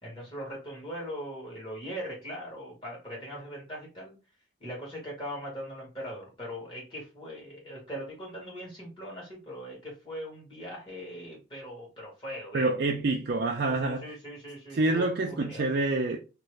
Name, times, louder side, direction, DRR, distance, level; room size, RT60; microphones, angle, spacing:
voice 1, 0.0-4.1 4.6-12.7 13.6-15.7, equal, 25° left, 1.4 m, -40 dB
voice 2, 12.5-14.1 14.7-16.2, right 2 dB, 55° right, 0.4 m, -27 dB
2.7 x 2.5 x 3.2 m
head